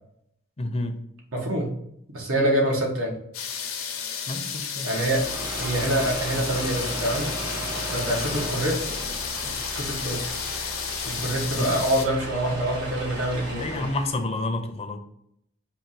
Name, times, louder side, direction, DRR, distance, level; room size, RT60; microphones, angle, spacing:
voice 1, 0.6-1.0 4.3-4.9 11.6-11.8 13.5-15.0, left 2 dB, 30° left, 6 dB, 0.5 m, -29 dB
voice 2, 1.3-1.7 2.1-3.2 4.8-5.2 5.6-7.3 7.9-8.8 9.4-10.2 11.0-13.8, right 1 dB, 80° right, -1 dB, 1.1 m, -26 dB
sound 1, 3.3-12.0, left 7 dB, 80° left, 0.7 m, -32 dB
sound 2, 4.9-14.2, right 1 dB, 60° right, 1.6 m, -35 dB
4.5 x 2.4 x 4.0 m, 0.75 s
head